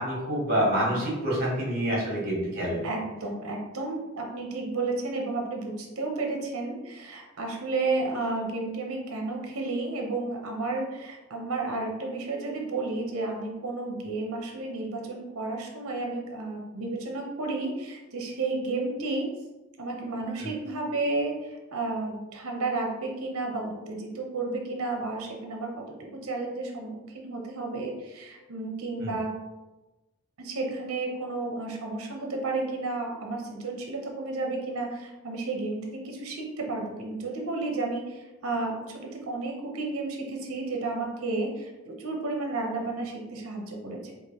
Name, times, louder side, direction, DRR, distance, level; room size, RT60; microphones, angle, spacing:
voice 1, 0.0-2.8 20.4-20.5 29.0-29.1, equal, 45° right, -5 dB, 1.3 m, -27 dB
voice 2, 2.8-19.3 19.8-29.3 30.4-44.1, right 3 dB, 75° right, 1 dB, 0.7 m, -32 dB
4.5 x 2.5 x 2.9 m, 1.1 s
head